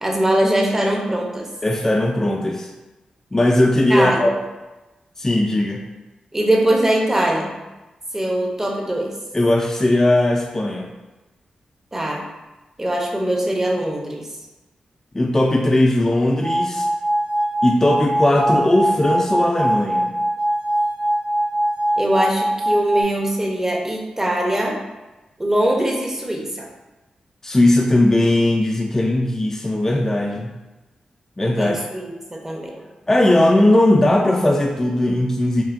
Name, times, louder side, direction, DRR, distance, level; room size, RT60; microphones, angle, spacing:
voice 1, 0.0-1.5 3.9-4.3 6.3-7.5 8.1-9.1 11.9-12.2 12.8-14.3 22.0-24.8 25.4-26.7 31.6-32.7, right 1 dB, 20° right, -1 dB, 0.7 m, -21 dB
voice 2, 1.6-2.7 3.3-4.4 5.2-5.8 9.3-10.9 15.1-16.9 17.6-20.2 27.4-30.5 31.4-31.8 33.1-35.6, left 1 dB, 20° left, 0 dB, 0.4 m, -18 dB
sound 1, 16.4-23.0, right 1 dB, 45° right, 0.9 m, -22 dB
5.4 x 2.2 x 2.5 m, 1.1 s
cardioid pair, 75°, 2 cm